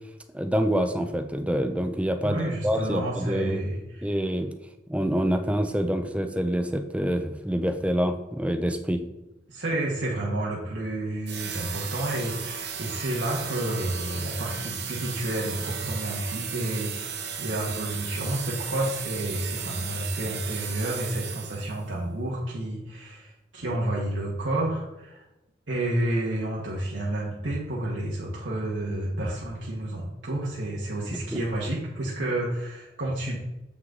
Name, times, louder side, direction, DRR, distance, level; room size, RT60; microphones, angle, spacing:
voice 1, 0.3-3.6 4.0-4.5 4.9-9.0 31.3-31.4, equal, 5° right, 8 dB, 0.5 m, -26 dB
voice 2, 2.2-4.2 9.5-25.2 25.7-33.4, right 1 dB, 80° right, -5 dB, 1.5 m, -30 dB
sound 1, 11.3-21.8, right 7 dB, 60° right, 1.0 m, -35 dB
7.7 x 6.1 x 3.8 m, 0.96 s
head